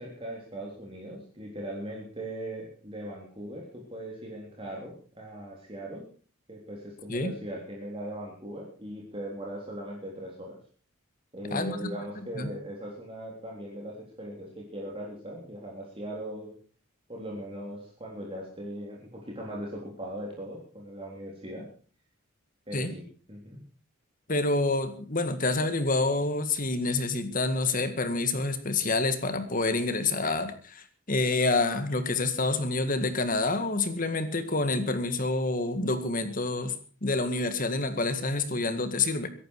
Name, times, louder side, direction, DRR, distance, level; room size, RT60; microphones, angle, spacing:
voice 1, 0.0-6.0 6.5-10.6 11.3-16.5 17.1-21.7 22.7-23.6, right 1 dB, 25° right, -2 dB, 3.6 m, -39 dB
voice 2, 11.5-12.0 12.4-12.5 22.7-22.9 24.3-36.7 37.0-39.3, left 3 dB, 40° left, 10 dB, 1.9 m, -28 dB
22.5 x 11.0 x 4.8 m, 0.41 s
head